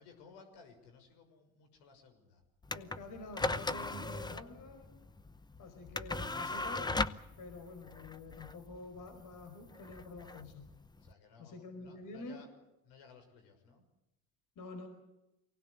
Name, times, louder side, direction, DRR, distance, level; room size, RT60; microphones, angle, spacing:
voice 1, 0.0-2.4 10.9-12.5 12.8-13.9, left 5 dB, 70° left, 6 dB, 6.4 m, -58 dB
sound 1, 2.6-11.1, left 2 dB, 10° left, 0.8 m, -39 dB
voice 2, 2.7-4.9 5.6-7.0 7.4-10.7 11.4-12.4 14.5-14.9, left 3 dB, 50° left, 6 dB, 5.1 m, -48 dB
24.0 x 18.5 x 8.2 m, 0.93 s
supercardioid pair, 105°, 42 cm